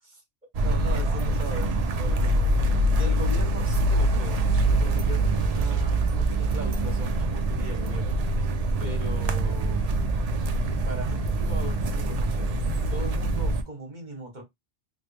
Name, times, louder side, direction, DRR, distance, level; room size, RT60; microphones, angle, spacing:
sound 1, 0.5-13.6, right 2 dB, 60° right, 0.4 m, -24 dB
voice 1, 0.6-4.4 4.8-8.2 8.8-9.8 10.8-12.5 12.9-14.4, equal, 45° right, 1.1 m, -39 dB
3.0 x 2.3 x 3.1 m
omnidirectional pair, 1.2 m